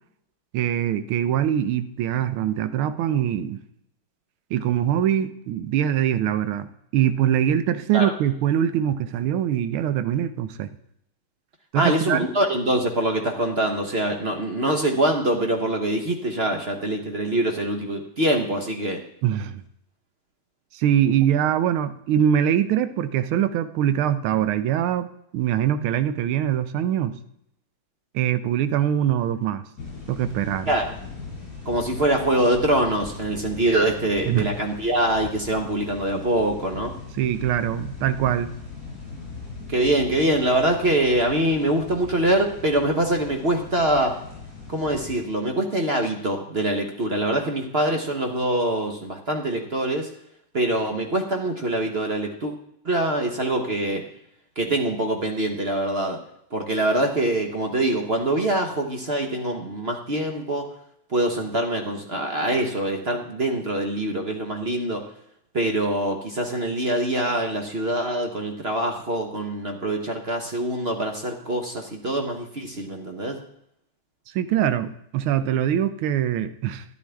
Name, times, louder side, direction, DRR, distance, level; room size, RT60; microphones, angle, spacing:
voice 1, 0.5-3.6 4.5-10.7 11.7-12.2 19.2-19.6 20.7-27.1 28.1-29.6 30.1-30.7 34.3-34.5 37.2-38.5 74.3-76.8, right 10 dB, 80° right, 11 dB, 1.5 m, -23 dB
voice 2, 11.7-19.0 30.7-30.9 31.6-36.9 39.7-44.2 44.7-50.1 50.5-52.5 52.8-54.0 54.6-56.2 56.5-60.7 61.1-65.0 65.5-73.4, right 1 dB, 40° right, 3 dB, 0.9 m, -24 dB
sound 1, 29.8-45.2, left 4 dB, 45° left, 5.2 m, -39 dB
12.0 x 11.0 x 3.4 m, 0.76 s
omnidirectional pair, 2.3 m